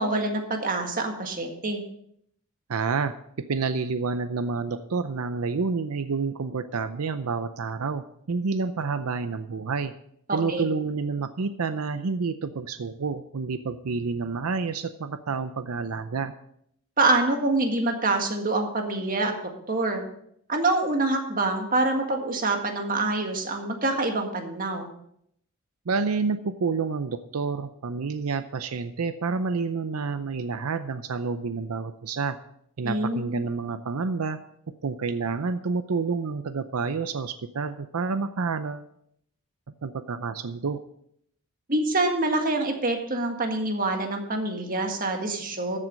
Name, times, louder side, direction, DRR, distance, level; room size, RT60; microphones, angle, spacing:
voice 1, 0.0-1.8 10.3-10.6 17.0-20.0 20.5-24.9 32.8-33.4 41.7-45.8, right 2 dB, 40° right, 4 dB, 1.8 m, -26 dB
voice 2, 2.7-3.1 3.5-9.9 10.3-16.3 25.9-32.4 32.8-34.4 34.8-38.9 39.8-40.8, right 4 dB, 85° right, 11 dB, 0.6 m, -29 dB
14.0 x 7.7 x 5.2 m, 0.71 s
head